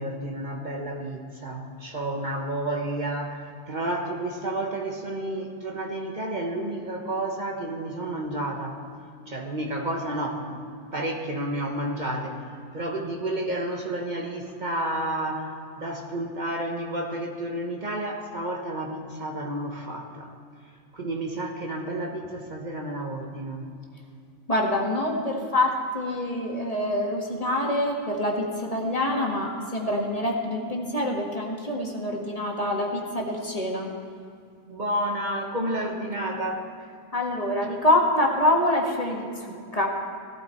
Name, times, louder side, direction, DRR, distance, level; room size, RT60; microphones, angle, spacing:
voice 1, 0.0-8.8 9.3-10.6 10.9-12.5 12.7-20.3 20.9-23.7 34.7-36.7, right 1 dB, 30° right, 1 dB, 1.0 m, -31 dB
voice 2, 24.5-33.9 37.1-39.9, left 1 dB, 20° left, -1 dB, 1.4 m, -26 dB
17.0 x 11.5 x 4.4 m, 2.2 s
omnidirectional pair, 2.1 m